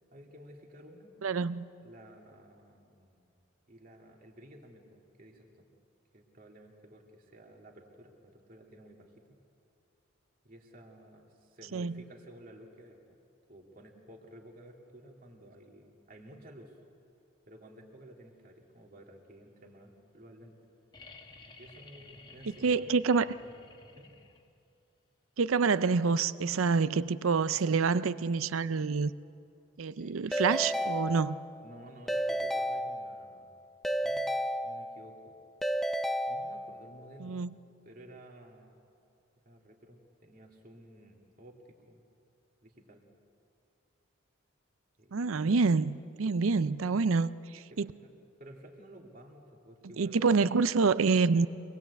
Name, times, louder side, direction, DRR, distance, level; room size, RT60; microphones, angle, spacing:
voice 1, 0.1-1.1 1.8-3.3 3.7-5.7 6.1-9.4 10.4-13.2 13.5-16.8 17.5-20.5 21.6-22.9 23.9-24.1 27.5-27.8 30.0-30.2 31.6-33.5 33.9-34.3 34.6-35.4 36.3-37.4 37.8-38.8 39.4-42.0 42.6-43.0 45.0-45.5 46.5-46.6 47.7-48.1 48.4-50.4, right 1 dB, 45° right, 0 dB, 2.4 m, -53 dB
voice 2, 1.2-1.6 11.7-11.9 22.6-23.3 25.4-29.1 29.8-31.4 37.2-37.5 45.1-47.9 50.0-51.5, right 4 dB, 85° right, 15 dB, 0.5 m, -27 dB
sound 1, 20.9-24.7 26.4-26.5, left 3 dB, 20° left, 1.2 m, -54 dB
Keyboard (musical) / Ringtone, 30.3-31.7 32.1-33.4 33.8-35.2 35.6-37.0, equal, ahead, 0.6 m, -32 dB
25.0 x 20.0 x 8.2 m, 2.5 s
head